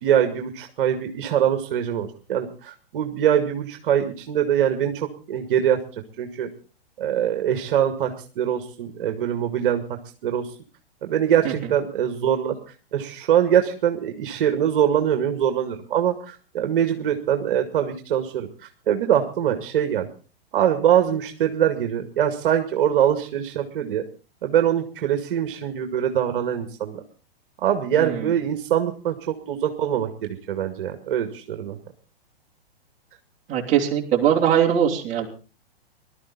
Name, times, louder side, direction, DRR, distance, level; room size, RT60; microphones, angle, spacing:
voice 1, 0.0-5.8 6.2-6.5 7.0-10.5 11.0-12.6 12.9-18.5 18.9-20.1 20.5-24.0 24.4-27.0 27.6-31.8, right 9 dB, 60° right, 6 dB, 2.1 m, -23 dB
voice 2, 28.0-28.4 33.5-35.3, right 9 dB, 25° right, -1 dB, 3.4 m, -21 dB
19.5 x 12.5 x 4.1 m, 0.35 s
hypercardioid pair, 140°, 31 cm